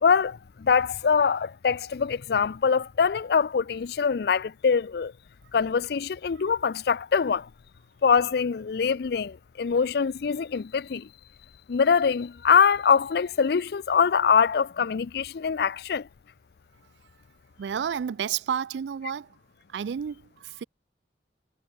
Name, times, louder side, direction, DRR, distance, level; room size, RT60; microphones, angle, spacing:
voice 1, 0.0-5.1 5.5-7.5 8.0-11.1 11.7-16.1, left 6 dB, 60° left, 0.4 m, -23 dB
voice 2, 17.6-19.4 19.7-20.6, right 8 dB, 75° right, 0.3 m, -31 dB
head